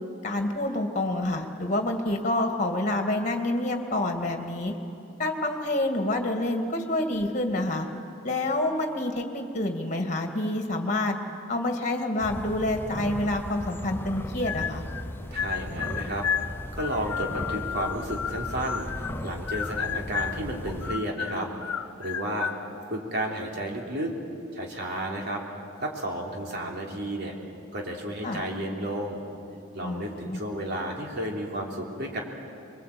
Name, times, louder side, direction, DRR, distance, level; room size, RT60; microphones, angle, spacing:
voice 1, 0.2-4.7 5.2-7.9 8.2-11.2 11.5-14.8 28.2-28.4 29.8-30.4, left 1 dB, 35° left, 4 dB, 2.1 m, -28 dB
sound 1, 12.2-21.0, left 1 dB, 10° left, 0.5 m, -37 dB
sound 2, 14.4-15.1 15.4-19.2 19.5-20.5 20.8-22.6, left 8 dB, 85° left, 0.7 m, -32 dB
voice 2, 15.3-16.4 16.7-21.5 22.0-22.5 22.9-24.1 24.5-25.4 25.8-27.3 27.7-29.2 29.7-32.2, right 1 dB, 50° right, 0 dB, 3.6 m, -32 dB
26.0 x 22.5 x 8.6 m, 2.8 s
head